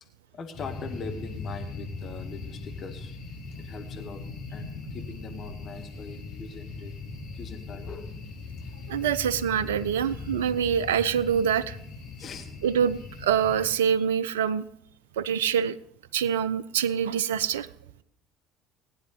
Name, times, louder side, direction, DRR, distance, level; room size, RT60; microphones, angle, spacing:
voice 1, 0.3-3.2 3.6-4.2 4.5-6.9 7.3-8.1 9.0-9.1 12.2-12.5, left 4 dB, 35° left, 6 dB, 1.7 m, -41 dB
sound 1, 0.5-13.7, left 3 dB, 55° left, 4.3 m, -39 dB
voice 2, 8.9-11.8 12.6-14.6 15.2-15.8 16.1-17.7, right 8 dB, 70° right, 19 dB, 0.5 m, -25 dB
19.0 x 10.0 x 3.9 m, 0.74 s
figure-of-eight pair, 60°, 0 cm